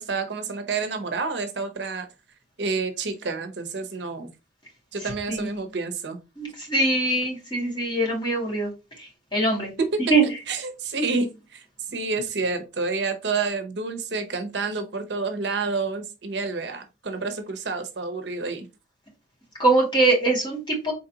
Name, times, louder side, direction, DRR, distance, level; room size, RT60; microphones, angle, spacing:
voice 1, 0.0-2.1 2.6-4.3 4.9-6.2 9.8-11.6 11.9-18.7, right 4 dB, 70° right, 7 dB, 0.8 m, -29 dB
voice 2, 5.0-5.5 6.4-8.7 9.0-9.7 10.1-10.2 19.6-20.9, right 2 dB, 25° left, -2 dB, 2.0 m, -23 dB
4.2 x 3.9 x 2.8 m, 0.28 s
head